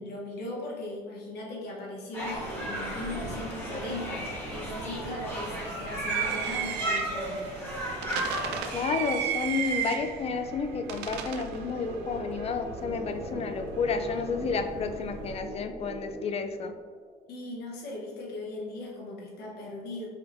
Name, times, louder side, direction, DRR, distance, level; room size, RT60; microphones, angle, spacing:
voice 1, 0.0-7.4 17.3-20.1, left 2 dB, 75° left, -3 dB, 1.0 m, -38 dB
sound 1, 2.1-8.9, equal, 15° left, 1.2 m, -34 dB
sound 2, 2.3-15.4, right 8 dB, 90° right, 0.4 m, -37 dB
voice 2, 8.7-16.7, left 5 dB, 40° left, 8 dB, 0.4 m, -31 dB
sound 3, 9.5-17.2, right 1 dB, 35° right, 0.8 m, -42 dB
4.8 x 3.1 x 2.6 m, 1.5 s
cardioid pair, 110°, 17 cm